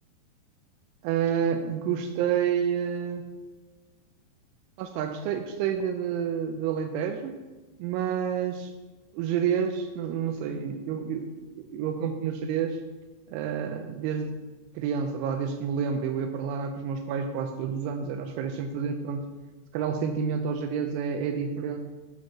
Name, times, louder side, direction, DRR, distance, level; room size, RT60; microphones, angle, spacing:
voice 1, 1.0-3.2 4.8-7.3 7.8-8.7 9.1-12.8 13.3-14.3 14.8-19.3 19.7-21.8, right 7 dB, 90° right, 5 dB, 3.0 m, -29 dB
9.0 x 4.3 x 5.9 m, 1.2 s
omnidirectional pair, 5.3 m